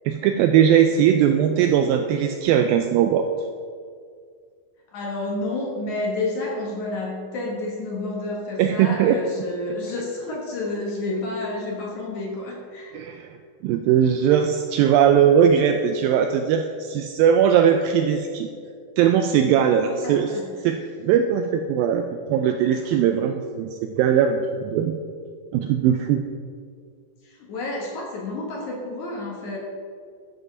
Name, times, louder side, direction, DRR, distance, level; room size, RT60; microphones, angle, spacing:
voice 1, 0.1-3.3 8.6-9.2 12.9-13.4 13.6-18.5 19.0-20.3 20.6-25.0 25.5-26.2, right 8 dB, 85° right, 6 dB, 2.1 m, -19 dB
voice 2, 4.9-13.0 19.8-20.6 27.2-29.6, left 2 dB, 60° left, -2 dB, 2.3 m, -30 dB
13.0 x 5.4 x 5.9 m, 2.1 s
omnidirectional pair, 4.6 m